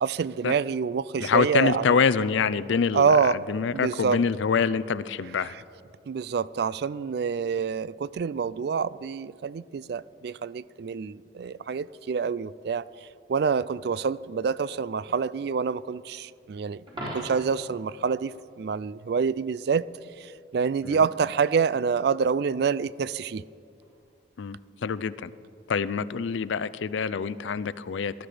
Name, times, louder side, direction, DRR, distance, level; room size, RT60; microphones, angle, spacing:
voice 1, 0.0-2.0 2.9-3.4 3.7-4.2 6.1-12.8 13.3-19.9 20.2-23.4, right 6 dB, 55° right, 19 dB, 0.3 m, -27 dB
voice 2, 1.2-5.5 20.8-21.0 24.4-25.3 25.7-28.3, left 5 dB, 75° left, 16 dB, 0.4 m, -26 dB
Coin (dropping), 16.9-17.7 23.8-24.0, equal, 25° right, 4.0 m, -37 dB
19.0 x 12.5 x 5.0 m, 2.4 s
head